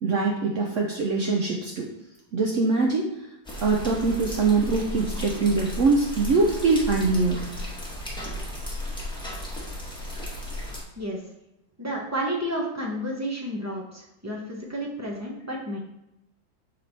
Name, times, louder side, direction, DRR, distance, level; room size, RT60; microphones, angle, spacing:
voice 1, 0.0-1.9 2.3-3.1 3.6-7.4, right 3 dB, 75° right, 0 dB, 0.6 m, -23 dB
sound 1, 3.4-10.8, left 1 dB, 5° left, 0.9 m, -34 dB
voice 2, 11.8-15.8, equal, 25° right, -3 dB, 0.3 m, -31 dB
6.6 x 3.5 x 4.1 m, 0.89 s
omnidirectional pair, 2.1 m